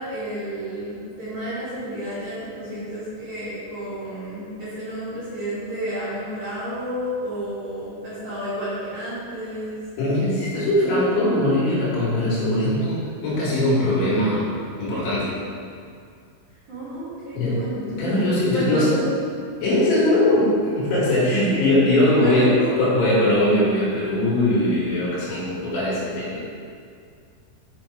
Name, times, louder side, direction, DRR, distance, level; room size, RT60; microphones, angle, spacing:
voice 1, 0.0-9.8 16.7-18.2 18.5-19.4 21.5-22.7, equal, 50° right, -13 dB, 2.7 m, -30 dB
voice 2, 10.0-14.5 14.8-15.3 17.3-17.6 17.8-18.9 19.6-22.5 22.8-26.4, left 1 dB, 70° left, -7 dB, 4.2 m, -21 dB
7.3 x 6.1 x 4.4 m, 2.3 s
omnidirectional pair, 5.6 m